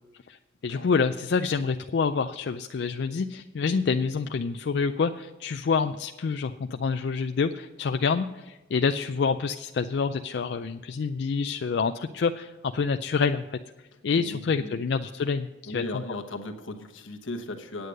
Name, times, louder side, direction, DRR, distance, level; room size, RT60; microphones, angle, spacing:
voice 1, 0.6-13.4 14.0-16.0, left 5 dB, 60° left, 7 dB, 0.3 m, -27 dB
voice 2, 14.2-14.8 15.7-17.9, left 2 dB, 80° left, 5 dB, 1.1 m, -37 dB
9.3 x 8.1 x 6.4 m, 1.1 s
head